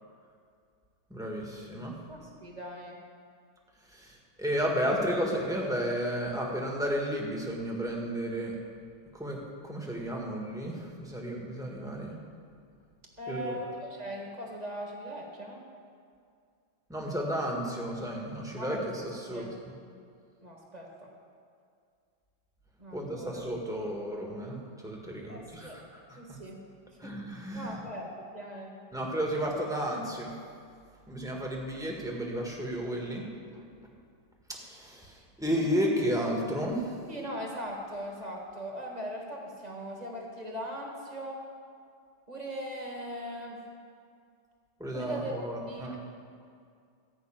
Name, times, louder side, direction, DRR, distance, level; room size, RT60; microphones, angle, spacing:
voice 1, 1.1-2.0 3.9-8.6 9.1-12.2 13.3-13.6 16.9-19.4 22.9-26.4 27.0-27.8 28.9-30.3 31.1-33.2 33.5-33.7 34.5-36.9 44.8-46.0, equal, ahead, -2 dB, 1.5 m, -33 dB
voice 2, 2.1-3.0 13.2-15.6 18.6-19.5 20.4-21.1 22.8-23.4 25.3-25.8 26.1-26.6 27.0-28.8 37.1-41.4 42.3-43.6 44.9-45.3 45.7-46.0, equal, 20° right, -1 dB, 1.7 m, -40 dB
14.0 x 5.8 x 8.9 m, 2.3 s
omnidirectional pair, 2.3 m